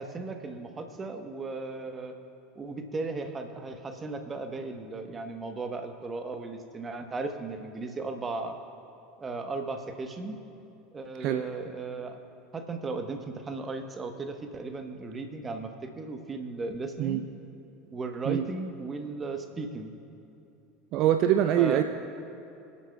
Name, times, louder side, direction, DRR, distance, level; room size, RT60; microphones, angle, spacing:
voice 1, 0.0-2.2 2.6-8.6 9.2-10.4 10.9-12.2 12.5-17.2 17.9-19.9 21.6-21.8, right 3 dB, 25° right, 6 dB, 1.1 m, -36 dB
voice 2, 20.9-21.8, right 11 dB, 50° right, 8 dB, 0.4 m, -24 dB
25.0 x 8.5 x 2.3 m, 2.7 s
figure-of-eight pair, 75°, 0 cm